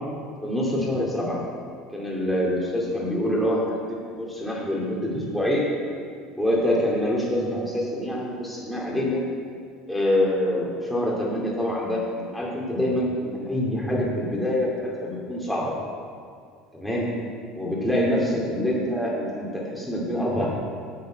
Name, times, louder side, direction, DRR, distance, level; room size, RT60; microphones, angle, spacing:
voice 1, 0.4-1.4 1.9-3.8 4.2-5.6 6.4-9.2 9.9-15.7 16.7-17.1 17.6-20.5, left 1 dB, ahead, -5 dB, 2.6 m, -25 dB
9.1 x 6.8 x 7.3 m, 2.1 s
supercardioid pair, 120°, 0 cm